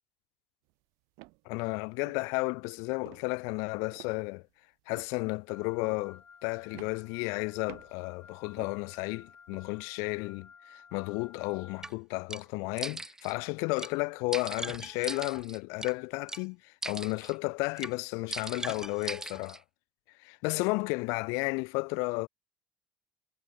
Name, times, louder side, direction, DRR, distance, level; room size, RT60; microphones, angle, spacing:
sound 1, 0.7-0.8 1.2-1.4 2.1-2.3 3.1-3.3 3.9-4.5 4.9-5.2 5.8-6.1 6.7-7.4 7.7-8.0 8.6-8.9 9.5-9.7, right 29 dB, 80° right, 1.7 m, -51 dB
voice 1, 1.5-4.4 4.9-19.6 20.2-22.3, left 31 dB, 80° left, 0.3 m, -33 dB
Wind instrument woodwind instrument, 5.5-11.9, left 6 dB, 30° left, 4.9 m, -55 dB
sound 2, 11.8-11.9 12.3-12.4 12.8-13.3 13.8-13.9 14.3-15.9 16.3-16.4 16.8-17.3 17.8-17.9 18.3-19.6, right 2 dB, 10° right, 1.1 m, -39 dB
cardioid pair, 120°, 5 cm